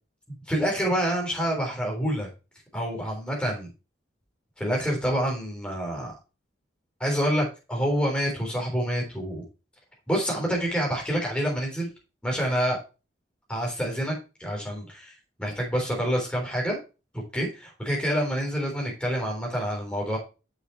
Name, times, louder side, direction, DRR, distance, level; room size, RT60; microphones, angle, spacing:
voice 1, 0.5-2.3 2.7-3.7 4.6-6.1 7.0-9.4 10.1-11.9 12.2-12.8 13.5-15.1 15.4-16.8 17.1-20.2, equal, 5° left, -2 dB, 3.5 m, -27 dB
6.6 x 6.3 x 4.5 m, 0.30 s
head